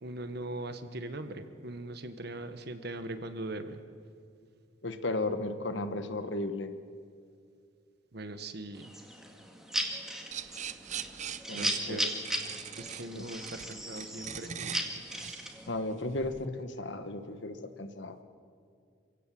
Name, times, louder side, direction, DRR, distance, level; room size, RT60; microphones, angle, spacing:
voice 1, 0.0-3.8 8.1-8.9 11.5-12.1 12.8-15.0, right 2 dB, 55° right, 9 dB, 1.5 m, -40 dB
voice 2, 4.8-6.7 11.5-12.1 13.1-13.3 15.7-18.2, left 2 dB, 65° left, 9 dB, 1.5 m, -35 dB
sound 1, 8.7-15.7, equal, ahead, 2.1 m, -37 dB
sound 2, 10.3-16.4, right 8 dB, 40° right, 0.7 m, -41 dB
27.0 x 16.5 x 7.8 m, 2.3 s
head